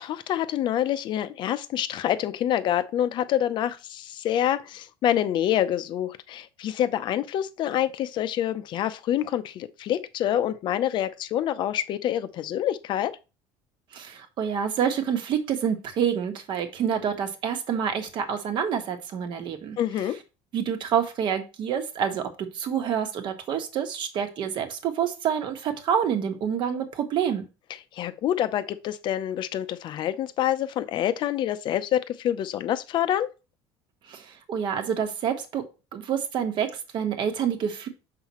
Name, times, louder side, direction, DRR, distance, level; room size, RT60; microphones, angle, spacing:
voice 1, 0.0-13.1 19.8-20.2 27.9-33.3, left 11 dB, 45° left, 0.6 m, -27 dB
voice 2, 13.9-19.8 20.5-27.4 34.1-35.6 35.9-37.9, right 8 dB, 45° right, 1.3 m, -27 dB
6.9 x 5.7 x 3.0 m
cardioid pair, 140°, 11 cm